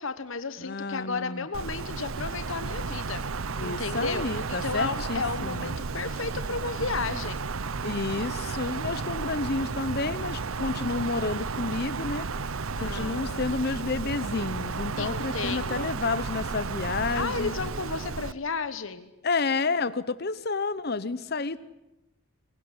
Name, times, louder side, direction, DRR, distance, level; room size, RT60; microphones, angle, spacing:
voice 1, 0.0-3.2 3.6-7.4 12.8-13.4 15.0-16.0 17.1-19.1, left 4 dB, 70° left, 11 dB, 1.1 m, -33 dB
voice 2, 0.6-1.5 3.6-5.8 7.8-12.3 12.8-17.5 19.2-21.6, left 3 dB, 50° left, 15 dB, 0.8 m, -30 dB
Wind, 1.5-18.3, right 4 dB, 75° right, 0.8 m, -33 dB
23.5 x 20.0 x 9.8 m, 0.94 s
head